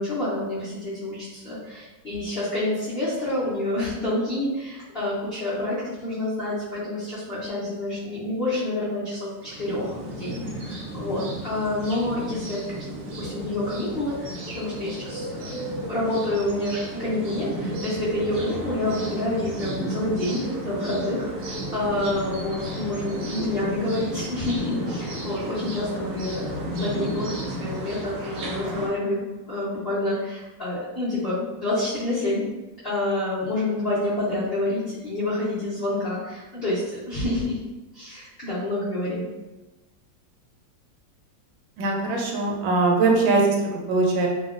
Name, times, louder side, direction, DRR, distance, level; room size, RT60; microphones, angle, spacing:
voice 1, 0.0-12.9 13.2-15.6 15.9-32.4 32.8-37.6 37.9-39.3, left 1 dB, 90° left, -11 dB, 0.5 m, -28 dB
sound 1, 9.4-28.9, right 1 dB, 75° right, 0.7 m, -33 dB
voice 2, 41.8-43.6 43.9-44.3, right 3 dB, 90° right, 0 dB, 1.4 m, -21 dB
2.8 x 2.6 x 2.4 m, 1.1 s
omnidirectional pair, 2.1 m